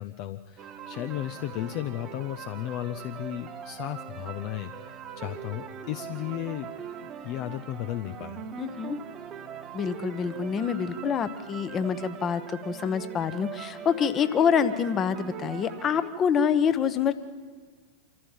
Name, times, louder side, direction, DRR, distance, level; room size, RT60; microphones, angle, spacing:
voice 1, 0.0-6.7 7.0-8.5, left 14 dB, 45° left, 9 dB, 0.7 m, -35 dB
sound 1, 0.6-16.1, right 8 dB, 30° right, 1.3 m, -41 dB
voice 2, 8.6-9.0 9.7-17.1, left 7 dB, 25° left, 12 dB, 1.1 m, -26 dB
27.0 x 14.0 x 7.5 m, 1.5 s
figure-of-eight pair, 90°, 0 cm